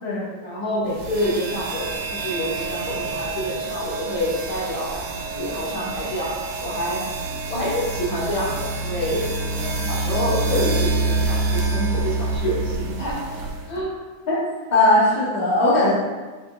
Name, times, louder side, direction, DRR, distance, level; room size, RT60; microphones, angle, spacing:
voice 1, 0.4-13.3 13.7-14.0, equal, 65° left, -7 dB, 4.2 m, -27 dB
sound 1, 0.9-13.8, right 3 dB, 85° right, 2.5 m, -27 dB
voice 2, 14.7-15.9, left 2 dB, 20° left, -8 dB, 2.0 m, -18 dB
11.0 x 6.1 x 2.8 m, 1.3 s
omnidirectional pair, 3.4 m